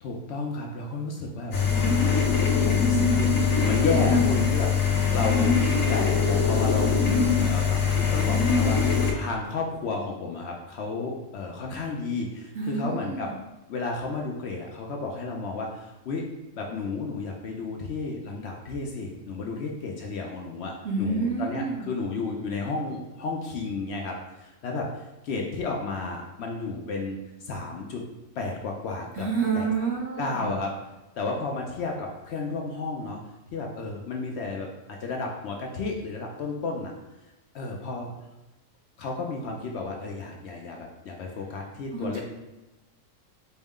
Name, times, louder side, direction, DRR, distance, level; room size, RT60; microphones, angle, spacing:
voice 1, 0.0-4.7 5.1-13.3 13.7-16.3 16.5-28.0 28.4-29.3 29.5-29.7 30.2-30.8 31.2-33.2 33.5-36.9 37.5-38.1 39.0-42.2, left 3 dB, 65° left, 0 dB, 0.7 m, -32 dB
sound 1, 1.5-9.1, left 5 dB, 90° left, 1.1 m, -22 dB
voice 2, 12.5-13.3 20.8-21.9 29.2-30.5 41.9-42.2, right 4 dB, 60° right, -2 dB, 1.0 m, -29 dB
4.3 x 2.1 x 3.5 m, 1.0 s
omnidirectional pair, 1.4 m